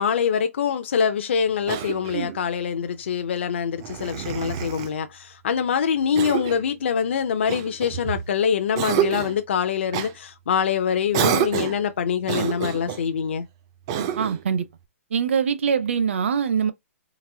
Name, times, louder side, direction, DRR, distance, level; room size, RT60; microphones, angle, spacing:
voice 1, 0.0-13.5, left 7 dB, 50° left, 0.4 m, -24 dB
Cough, 1.7-2.4 3.8-4.9 6.1-6.7 7.5-8.3 8.7-9.4 9.9-10.1 11.1-11.8 12.2-13.0 13.9-14.4, right 9 dB, 20° right, 0.3 m, -27 dB
voice 2, 14.2-14.7 15.1-16.7, right 7 dB, 55° right, 0.7 m, -23 dB
4.0 x 2.5 x 2.6 m
hypercardioid pair, 175°, 8 cm